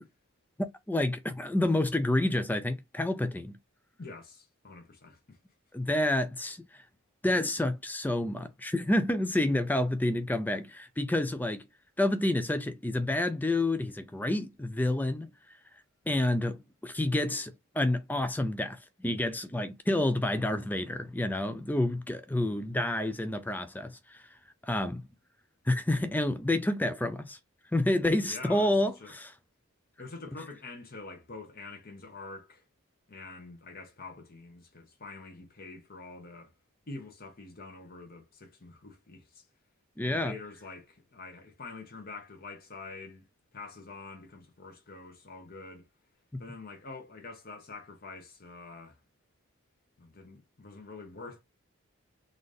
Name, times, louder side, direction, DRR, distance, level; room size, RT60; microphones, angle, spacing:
voice 1, 0.9-3.6 5.7-6.6 7.2-11.7 12.0-15.3 16.1-24.2 24.7-25.0 25.7-27.4 27.7-29.3 40.0-40.3, left 1 dB, 10° left, 0.3 m, -29 dB
voice 2, 4.0-5.4 28.3-29.2 30.0-32.6 33.1-36.5 36.9-39.5 40.0-43.3 43.5-45.9 46.4-49.0 50.0-51.4, left 3 dB, 40° left, 0.9 m, -46 dB
3.9 x 2.5 x 3.3 m
head